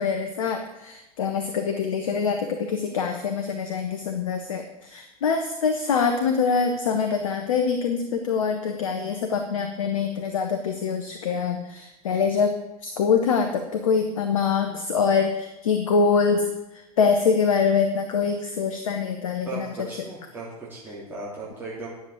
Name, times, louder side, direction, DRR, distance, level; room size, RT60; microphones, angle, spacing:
voice 1, 0.0-12.6 12.8-19.7, left 5 dB, 60° left, 6 dB, 1.2 m, -24 dB
voice 2, 19.4-21.9, right 2 dB, 10° right, -7 dB, 3.2 m, -37 dB
10.5 x 7.5 x 8.4 m, 0.97 s
figure-of-eight pair, 90°, 20 cm